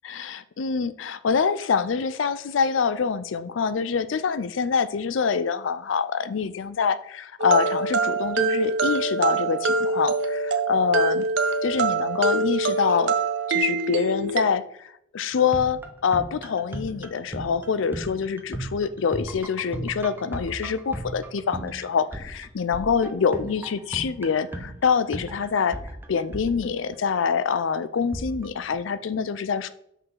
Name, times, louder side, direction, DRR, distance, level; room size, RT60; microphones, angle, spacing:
voice 1, 0.0-11.3 11.6-13.1 13.5-14.9 15.1-25.8 26.1-29.7, left 6 dB, 85° left, 14 dB, 0.5 m, -25 dB
sound 1, 7.4-14.4, right 3 dB, 70° right, 0.6 m, -24 dB
sound 2, 15.3-27.2 28.1-28.7, right 1 dB, 10° right, 0.6 m, -37 dB
5.9 x 5.4 x 3.8 m, 0.72 s
head